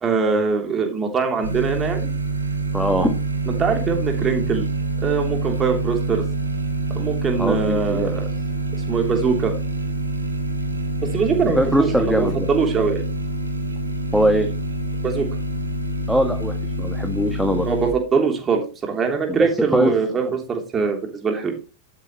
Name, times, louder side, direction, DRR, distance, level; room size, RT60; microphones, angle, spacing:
voice 1, 0.0-2.1 3.5-4.6 5.0-6.2 6.9-8.3 8.9-9.5 11.1-13.0 15.0-15.3 17.7-21.5, right 5 dB, 20° right, 3 dB, 3.1 m, -22 dB
sound 1, 1.4-17.9, right 2 dB, 80° right, 2.3 m, -26 dB
voice 2, 2.7-3.2 7.4-8.2 11.6-12.5 14.1-14.5 16.1-17.7 19.3-19.9, equal, ahead, 5 dB, 1.6 m, -21 dB
12.0 x 9.2 x 3.1 m, 0.32 s
figure-of-eight pair, 90°, 0 cm